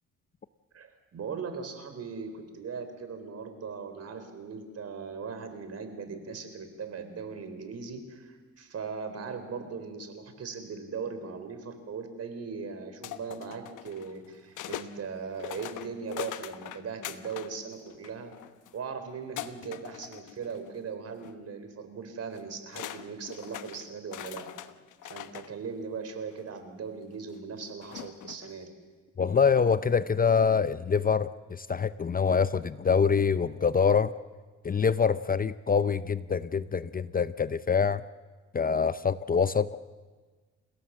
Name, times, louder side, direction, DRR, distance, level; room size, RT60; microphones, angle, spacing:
voice 1, 0.7-18.3 18.7-24.5 25.0-28.7, right 5 dB, 55° right, 8 dB, 4.0 m, -39 dB
sound 1, 13.0-14.9 15.4-17.5 17.9-18.7 19.4-20.8 21.1-21.3 22.3-22.4 22.7-25.5 26.3-26.4 27.8-28.5, left 12 dB, 80° left, 1.1 m, -41 dB
voice 2, 29.2-34.1 34.6-38.0 38.5-39.8, left 6 dB, 30° left, 14 dB, 0.7 m, -25 dB
29.5 x 17.0 x 7.4 m, 1.4 s
cardioid pair, 90°, 30 cm